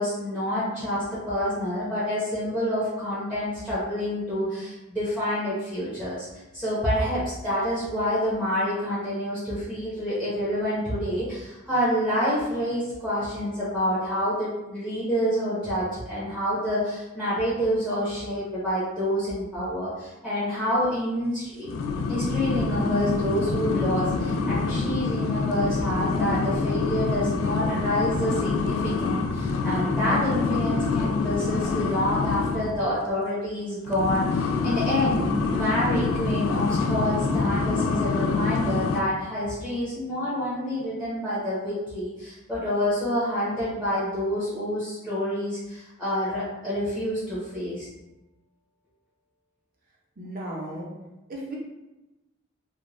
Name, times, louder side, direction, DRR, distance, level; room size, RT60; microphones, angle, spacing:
voice 1, 0.0-6.3 6.5-21.7 22.1-35.2 35.5-47.9, equal, ahead, -11 dB, 0.7 m, -27 dB
sound 1, 21.7-32.8 33.9-39.0, left 4 dB, 75° left, 0.3 m, -26 dB
voice 2, 50.2-50.9 51.3-51.6, right 1 dB, 45° right, -3 dB, 0.6 m, -35 dB
2.5 x 2.2 x 3.1 m, 1.0 s
head